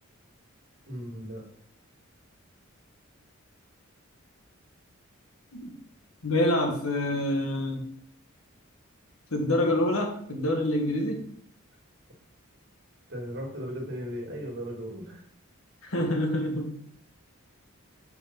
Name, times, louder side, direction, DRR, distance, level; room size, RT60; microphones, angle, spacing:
voice 1, 0.9-1.5 13.1-15.3, equal, 55° right, 0 dB, 2.2 m, -36 dB
voice 2, 6.2-7.8 9.3-11.2 15.9-16.8, left 1 dB, 85° left, 3 dB, 1.5 m, -26 dB
5.6 x 4.7 x 5.8 m, 0.64 s
head